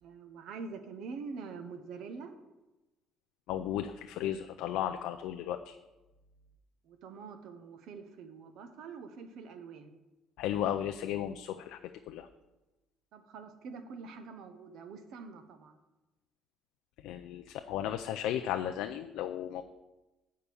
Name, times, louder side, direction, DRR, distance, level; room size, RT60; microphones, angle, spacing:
voice 1, 0.0-2.3 6.8-9.9 13.1-15.8, right 5 dB, 65° right, 9 dB, 0.8 m, -45 dB
voice 2, 3.5-5.8 10.4-11.8 12.1-12.3 17.0-19.6, left 11 dB, 85° left, 6 dB, 0.4 m, -34 dB
8.7 x 4.7 x 6.8 m, 1.1 s
cardioid pair, 165°, 0 cm